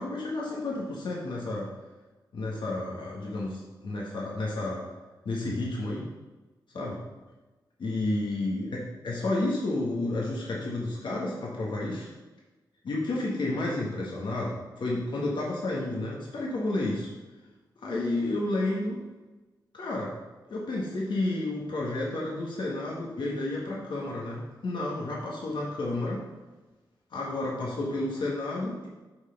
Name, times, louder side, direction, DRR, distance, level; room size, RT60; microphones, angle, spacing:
voice 1, 0.0-1.7 2.3-4.9 5.3-6.1 6.7-7.0 7.8-12.1 12.8-17.1 17.8-19.0 19.7-20.2 20.5-26.3 27.1-28.9, left 2 dB, 85° left, -4 dB, 1.6 m, -31 dB
6.3 x 5.8 x 5.7 m, 1.2 s
wide cardioid pair, 90°, 8 cm